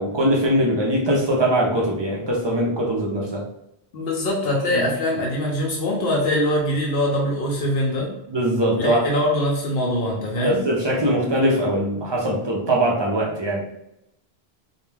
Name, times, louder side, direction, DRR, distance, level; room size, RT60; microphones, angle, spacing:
voice 1, 0.0-3.4 4.7-4.8 8.3-9.0 10.4-13.6, right 1 dB, 40° right, -2 dB, 0.4 m, -21 dB
voice 2, 3.9-8.1 8.7-10.6, left 1 dB, 70° left, -1 dB, 0.8 m, -23 dB
2.3 x 2.2 x 3.2 m, 0.81 s
omnidirectional pair, 1.1 m